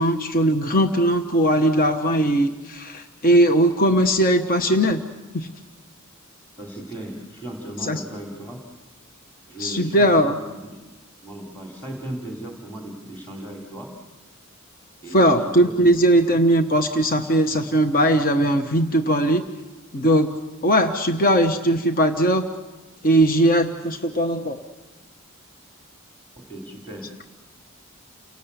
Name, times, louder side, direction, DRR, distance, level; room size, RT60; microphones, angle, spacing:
voice 1, 0.0-5.0 5.3-5.5 7.8-8.0 9.6-10.4 15.1-19.4 19.9-20.3 20.6-22.5 23.0-24.6, right 1 dB, 45° left, 6 dB, 1.1 m, -19 dB
voice 2, 6.5-8.6 9.5-10.8 11.2-13.9 15.0-15.9 16.3-16.4 26.4-27.1, right 1 dB, 10° left, 0 dB, 3.1 m, -36 dB
29.5 x 18.5 x 8.3 m, 1.2 s
head